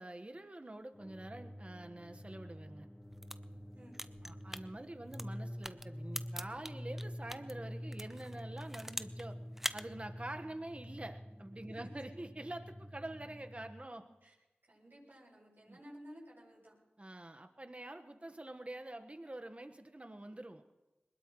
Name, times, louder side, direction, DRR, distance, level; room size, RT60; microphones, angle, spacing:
voice 1, 0.0-2.9 4.2-9.4 9.7-14.2 15.7-15.8 17.0-20.6, right 1 dB, 35° right, 7 dB, 1.4 m, -46 dB
sound 1, 0.9-13.7, equal, 20° left, 1.6 m, -47 dB
sound 2, 3.0-7.5 7.9-9.3 9.5-9.8, equal, 10° right, 0.7 m, -43 dB
voice 2, 3.7-4.1 11.7-11.8 14.2-14.3 14.7-16.8, equal, 65° right, -5 dB, 7.7 m, -55 dB
21.5 x 20.5 x 3.2 m, 1.1 s
cardioid pair, 40°, 4 cm